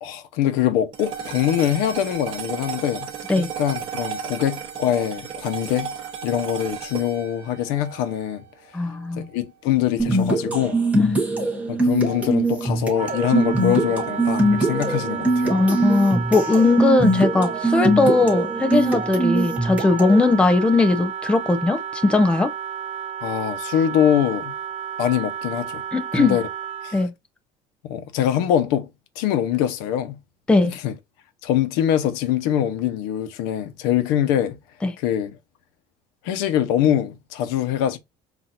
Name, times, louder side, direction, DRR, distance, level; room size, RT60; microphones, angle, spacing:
voice 1, 0.0-3.1 3.4-5.9 6.2-8.4 9.2-10.8 11.7-15.6 23.2-24.5 25.0-25.8 26.1-26.5 26.8-27.0 27.8-28.9 29.2-30.2 30.6-30.9 31.4-34.6 35.0-35.4 36.2-38.0, left 10 dB, 90° left, 0.9 m, -23 dB
sound 1, 0.9-9.4, right 8 dB, 35° right, 0.9 m, -34 dB
voice 2, 8.7-9.3 11.0-11.1 15.5-22.5 25.9-26.4 26.9-27.1 30.5-30.7 34.8-34.9, left 3 dB, 5° left, 0.4 m, -19 dB
sound 2, 10.0-20.2, right 2 dB, 10° right, 1.3 m, -22 dB
Wind instrument woodwind instrument, 12.9-27.0, right 8 dB, 60° right, 0.5 m, -32 dB
6.0 x 2.6 x 2.6 m
cardioid pair, 170°, 15 cm